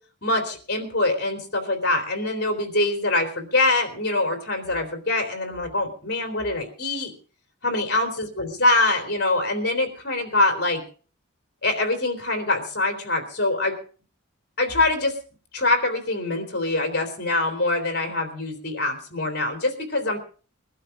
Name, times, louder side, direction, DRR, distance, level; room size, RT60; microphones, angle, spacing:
voice 1, 0.2-7.1 7.6-10.8 11.6-13.8 14.6-15.2 15.5-20.2, left 2 dB, 50° left, 5 dB, 3.5 m, -24 dB
22.0 x 12.5 x 3.8 m, 0.39 s
head